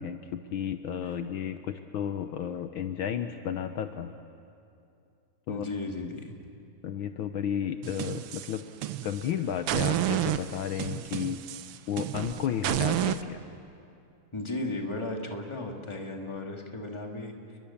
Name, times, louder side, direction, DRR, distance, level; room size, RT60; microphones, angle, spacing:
voice 1, 0.0-4.1 5.5-5.7 6.8-8.6 9.0-11.4 11.9-13.4, left 9 dB, 70° left, 8 dB, 1.5 m, -33 dB
voice 2, 5.5-6.4 14.3-17.6, left 2 dB, 15° left, 2 dB, 2.1 m, -35 dB
sound 1, 7.8-9.3 9.7-13.2, right 12 dB, 80° right, 1.7 m, -30 dB
29.5 x 22.0 x 7.2 m, 2.5 s
omnidirectional pair, 2.4 m